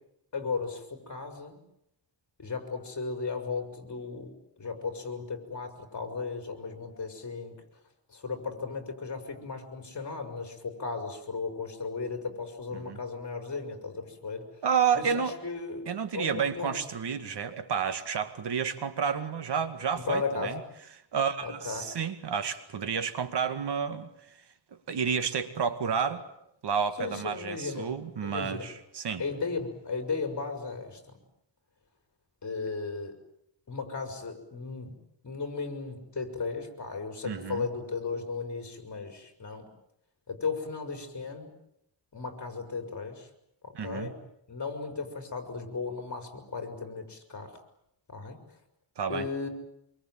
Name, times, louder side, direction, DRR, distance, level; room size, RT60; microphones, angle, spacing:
voice 1, 0.3-1.6 2.4-7.5 8.1-14.5 14.9-16.8 20.0-20.6 21.4-21.9 27.0-27.9 28.2-28.7 29.2-31.0 32.4-33.2 33.7-35.0 35.2-39.7 40.3-41.5 42.1-43.3 43.6-44.2 44.5-47.6 48.1-48.4 49.1-49.5, left 4 dB, 40° left, 6 dB, 5.2 m, -35 dB
voice 2, 14.6-15.3 15.9-20.6 21.1-24.1 24.9-26.2 26.6-29.2 37.2-37.7 43.7-44.1 49.0-49.3, right 7 dB, 65° right, 10 dB, 2.2 m, -30 dB
26.0 x 24.0 x 9.1 m, 0.77 s
wide cardioid pair, 135°, 44 cm